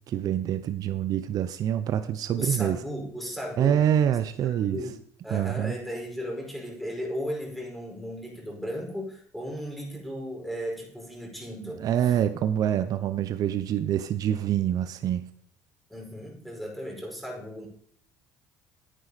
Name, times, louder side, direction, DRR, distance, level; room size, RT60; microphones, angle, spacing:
voice 1, 0.1-2.8 3.6-4.8 5.3-5.7 11.6-15.3, right 10 dB, 55° right, 10 dB, 0.8 m, -26 dB
voice 2, 2.4-3.8 4.4-5.0 5.2-12.2 15.9-17.7, equal, ahead, -1 dB, 5.0 m, -35 dB
10.0 x 9.4 x 4.2 m, 0.63 s
supercardioid pair, 80°, 8 cm